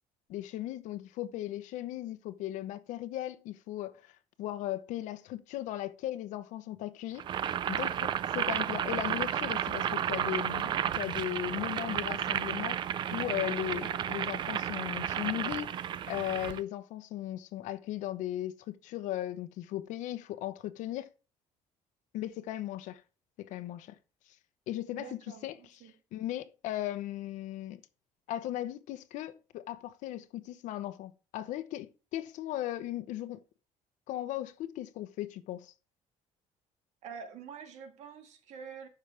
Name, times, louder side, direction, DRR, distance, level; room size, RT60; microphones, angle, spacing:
voice 1, 0.3-7.3 7.7-12.8 13.1-21.1 22.1-23.0 23.4-24.0 24.7-25.8 26.1-27.8 28.3-33.4 34.1-35.7, left 13 dB, 70° left, 1.0 m, -37 dB
Boiling, 7.2-16.6, right 10 dB, 40° right, 0.4 m, -32 dB
voice 2, 24.9-25.9 37.0-38.9, right 6 dB, 65° right, 1.8 m, -46 dB
12.5 x 5.9 x 3.4 m
cardioid pair, 170°, 13 cm